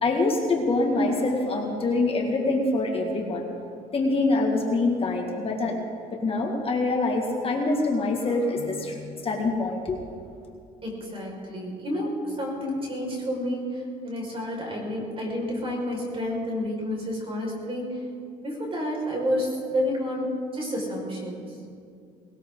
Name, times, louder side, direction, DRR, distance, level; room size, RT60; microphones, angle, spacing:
voice 1, 0.0-3.4 3.9-5.7 6.1-9.0 9.2-10.0, left 2 dB, 35° left, 0 dB, 2.0 m, -25 dB
voice 2, 10.8-18.0 18.4-21.5, equal, 35° right, -1 dB, 5.3 m, -30 dB
19.5 x 19.0 x 3.9 m, 2.5 s
cardioid pair, 110°, 17 cm